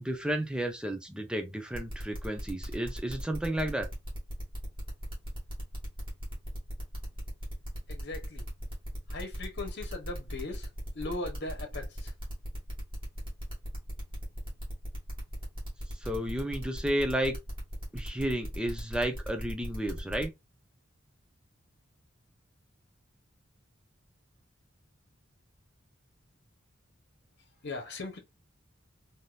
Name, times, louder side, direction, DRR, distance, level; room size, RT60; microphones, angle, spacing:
voice 1, 0.0-3.9 16.0-17.4 17.9-20.3, right 1 dB, 5° right, 0.5 m, -32 dB
sound 1, 1.7-20.2, equal, 25° right, 2.0 m, -39 dB
voice 2, 7.9-8.5 9.1-10.7 10.9-12.1 27.6-28.2, left 2 dB, 60° left, 1.0 m, -39 dB
3.5 x 2.7 x 2.5 m
head